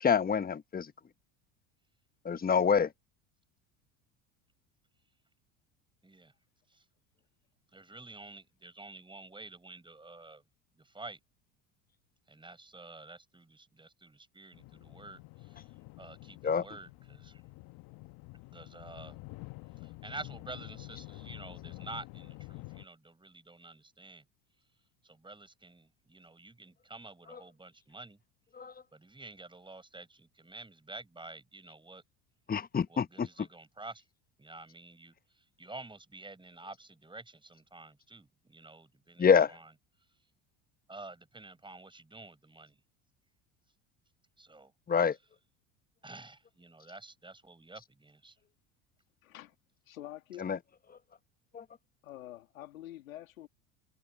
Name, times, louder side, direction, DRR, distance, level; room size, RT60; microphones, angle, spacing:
voice 1, 0.0-0.9 2.2-2.9 16.4-16.7 27.3-27.4 28.5-28.7 32.5-33.5 39.2-39.6 44.9-45.2 50.4-50.6 51.5-51.6, left 6 dB, 20° left, 1.1 m, -27 dB
voice 2, 7.7-10.4 10.8-11.2 12.3-15.6 16.0-17.4 18.5-19.2 19.8-24.2 25.0-28.2 28.9-32.0 32.9-34.0 34.4-35.1 35.6-39.6 40.9-42.7 44.4-44.7 46.0-48.4, right 2 dB, 10° right, 6.2 m, -49 dB
sound 1, 14.5-22.8, left 23 dB, 60° left, 1.2 m, -48 dB
voice 3, 49.2-49.6 49.9-50.5 52.0-53.5, left 14 dB, 85° left, 2.5 m, -47 dB
hypercardioid pair, 75°, 40 cm